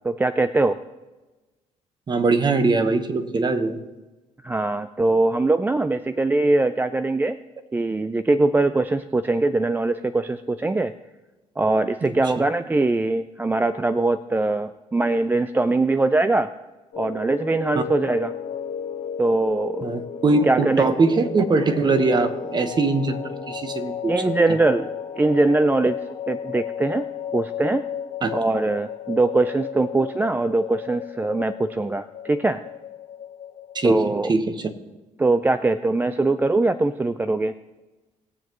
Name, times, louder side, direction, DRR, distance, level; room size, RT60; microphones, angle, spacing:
voice 1, 0.0-0.8 4.4-7.4 7.7-10.9 11.6-16.5 17.0-18.3 19.2-20.0 20.4-21.0 24.1-24.9 25.2-26.0 26.3-27.1 27.3-27.9 28.3-32.6 33.8-34.3 35.2-37.5, right 2 dB, 15° right, 11 dB, 0.4 m, -22 dB
voice 2, 2.1-3.8 12.0-12.4 17.7-17.8 19.8-24.2 28.2-28.4 33.7-34.7, right 3 dB, 35° right, 9 dB, 1.1 m, -22 dB
sound 1, 16.9-34.3, left 8 dB, 65° left, 1.2 m, -34 dB
20.5 x 7.4 x 3.0 m, 1.2 s
cardioid pair, 95°, 13 cm